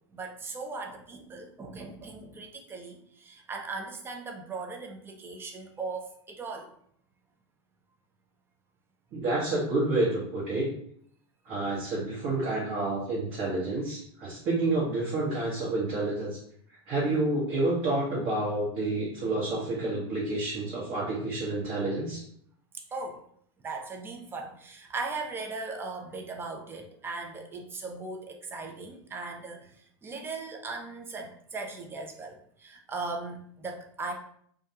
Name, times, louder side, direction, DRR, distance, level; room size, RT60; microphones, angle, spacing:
voice 1, 0.1-6.7 22.9-23.2 23.6-29.8 30.0-34.1, right 3 dB, 15° right, 2 dB, 0.4 m, -38 dB
voice 2, 9.1-10.7 11.4-16.4 16.9-22.2, right 2 dB, 45° right, -6 dB, 0.9 m, -29 dB
2.3 x 2.2 x 2.7 m, 0.64 s
hypercardioid pair, 110°, 14 cm